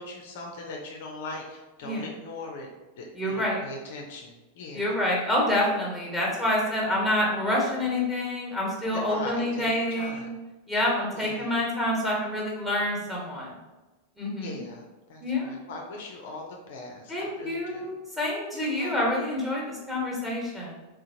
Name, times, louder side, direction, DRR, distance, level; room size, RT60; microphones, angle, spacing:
voice 1, 0.0-2.7 3.0-4.9 8.9-10.4 11.1-11.5 14.4-14.8 15.1-17.9 18.5-19.0, left 2 dB, 55° left, 1 dB, 0.5 m, -40 dB
voice 2, 3.1-3.6 4.7-10.3 10.7-13.6 14.2-14.6 15.2-15.5 17.1-20.7, left 1 dB, 5° right, -4 dB, 1.1 m, -27 dB
3.8 x 2.4 x 2.7 m, 1.2 s
figure-of-eight pair, 90°, 0 cm